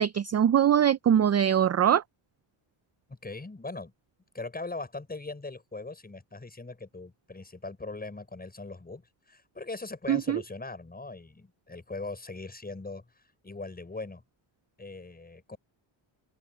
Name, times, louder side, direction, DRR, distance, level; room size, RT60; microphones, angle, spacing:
voice 1, 0.0-2.0 10.1-10.4, right 9 dB, 35° right, 0.4 m, -22 dB
voice 2, 3.1-3.9 4.3-13.0 13.4-14.2 14.8-15.6, left 3 dB, 20° left, 6.4 m, -40 dB
open air
wide cardioid pair, 135°, 49 cm